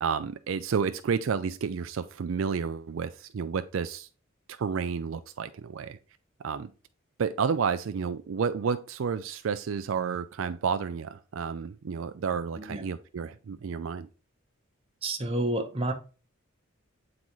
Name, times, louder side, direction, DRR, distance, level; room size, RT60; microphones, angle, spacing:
voice 1, 0.0-4.1 4.5-6.0 6.4-6.7 7.2-14.1, right 6 dB, 70° right, 0.4 m, -31 dB
voice 2, 15.0-15.9, right 1 dB, 25° right, 0.9 m, -29 dB
8.5 x 3.9 x 3.0 m
head